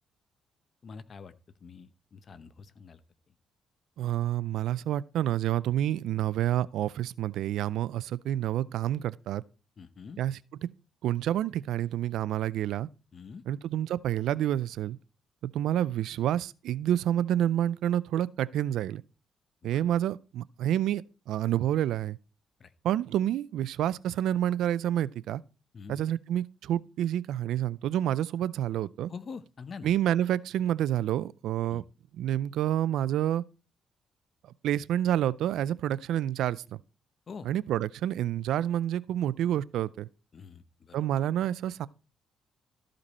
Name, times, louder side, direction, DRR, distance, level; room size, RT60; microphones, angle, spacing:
voice 1, 0.8-1.3 1.6-3.0 9.8-10.2 13.1-13.4 19.6-19.8 22.6-22.7 25.7-26.0 29.1-29.9 31.7-31.8 37.3-37.5 40.3-41.0, left 5 dB, 45° left, 0.8 m, -45 dB
voice 2, 4.0-9.4 10.2-10.4 11.0-12.9 13.5-15.0 15.4-19.0 19.6-21.0 21.3-22.2 22.8-25.4 25.9-29.1 29.8-31.8 32.1-33.4 34.6-36.6 37.4-40.1 40.9-41.9, right 11 dB, 80° right, 0.4 m, -28 dB
13.5 x 5.1 x 4.2 m
cardioid pair, 90°, 0 cm